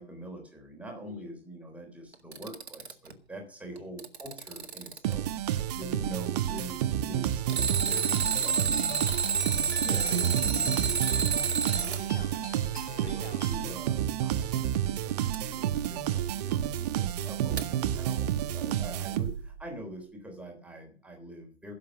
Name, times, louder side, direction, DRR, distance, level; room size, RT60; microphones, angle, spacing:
voice 1, 0.0-9.2 9.8-11.3 12.4-12.6 13.0-21.7, right 1 dB, 5° right, 2 dB, 3.5 m, -44 dB
Alarm, 2.1-3.1 3.8-5.1 7.5-12.0 15.3-15.4 17.6-17.7, right 6 dB, 70° right, 1.9 m, -29 dB
sound 1, 5.0-19.6, right 11 dB, 40° right, 1.2 m, -30 dB
sound 2, 8.6-13.7, left 2 dB, 80° left, 4.2 m, -47 dB
voice 2, 11.6-13.5 18.5-18.9, left 4 dB, 55° left, 5 dB, 3.3 m, -49 dB
16.0 x 7.5 x 6.0 m, 0.43 s
figure-of-eight pair, 115°, 33 cm